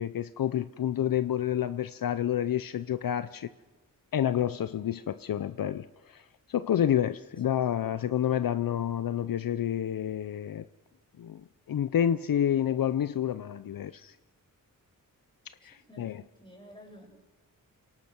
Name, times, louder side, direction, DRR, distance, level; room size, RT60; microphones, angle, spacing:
voice 1, 0.0-3.5 4.1-6.2 6.5-10.7 11.2-14.2 15.6-16.2, left 10 dB, 70° left, 0.6 m, -29 dB
voice 2, 15.6-17.1, equal, 15° left, 6.2 m, -52 dB
27.5 x 18.0 x 6.0 m
wide cardioid pair, 95°, 36 cm